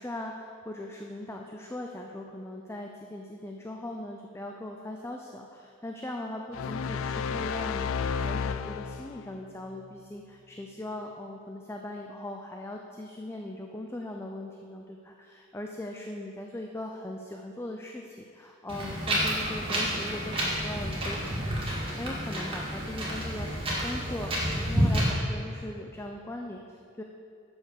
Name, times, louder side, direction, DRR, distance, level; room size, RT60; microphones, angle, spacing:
voice 1, 0.0-27.0, left 1 dB, 10° left, 2 dB, 0.5 m, -39 dB
sound 1, 6.5-9.3, left 6 dB, 85° left, 0.4 m, -32 dB
Wind, 18.7-25.1, equal, 25° right, 2.0 m, -29 dB
11.0 x 5.3 x 6.7 m, 2.4 s
head